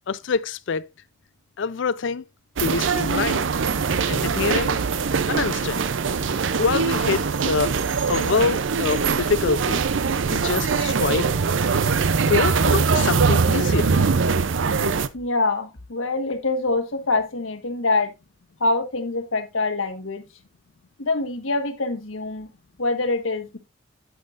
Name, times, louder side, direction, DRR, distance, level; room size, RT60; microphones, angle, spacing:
voice 1, 0.1-0.9 1.6-2.2 2.6-3.5 4.1-4.8 5.3-5.8 6.6-7.8 8.1-9.8 10.3-11.3 11.7-11.8 12.3-13.9, left 5 dB, 65° left, 0.4 m, -25 dB
sound 1, 2.6-15.1, right 5 dB, 70° right, 0.6 m, -22 dB
voice 2, 15.1-18.1 18.6-20.2 21.0-22.5 22.8-23.6, left 3 dB, 85° left, 1.5 m, -25 dB
9.1 x 8.6 x 2.5 m
head